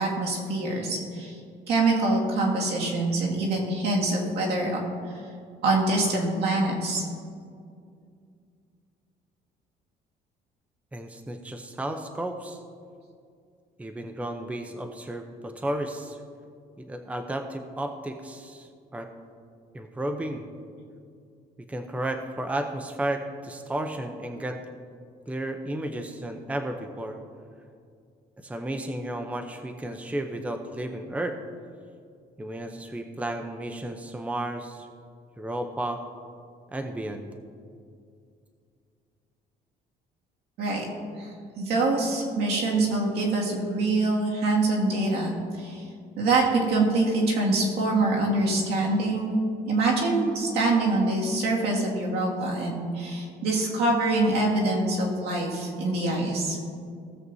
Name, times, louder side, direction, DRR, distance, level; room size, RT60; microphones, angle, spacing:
voice 1, 0.0-1.3 1.7-4.8 5.6-7.0 40.6-40.9 41.2-41.3 41.6-45.8 46.2-49.4 49.7-56.6, right 2 dB, 75° right, -2 dB, 2.2 m, -25 dB
voice 2, 10.9-12.6 13.8-16.2 16.8-19.1 19.7-20.4 21.6-24.6 25.3-27.2 28.4-31.4 32.4-34.9 35.4-36.0 36.7-37.3, right 1 dB, 10° right, 6 dB, 0.6 m, -33 dB
16.5 x 7.8 x 2.7 m, 2.3 s
cardioid pair, 110°, 17 cm